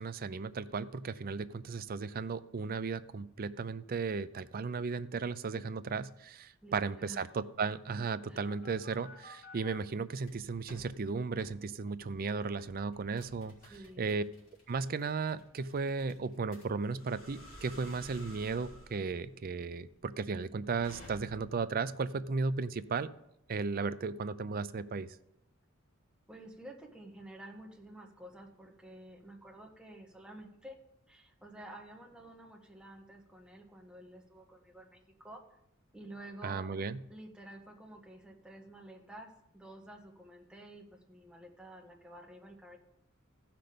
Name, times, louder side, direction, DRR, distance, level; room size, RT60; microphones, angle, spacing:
voice 1, 0.0-13.5 14.0-14.2 14.7-23.1 23.5-25.1 36.4-37.0, right 4 dB, 45° right, 14 dB, 0.4 m, -35 dB
voice 2, 6.6-7.3 8.3-8.5 13.7-14.1 26.3-30.8 31.1-35.4 35.9-36.8 37.1-42.8, right 1 dB, 5° right, 0 dB, 1.5 m, -51 dB
sound 1, 8.0-9.7 10.2-10.9 11.4-11.5 12.0-12.2 12.6-21.6, equal, 40° left, 3.8 m, -53 dB
14.5 x 5.9 x 5.1 m, 0.80 s
head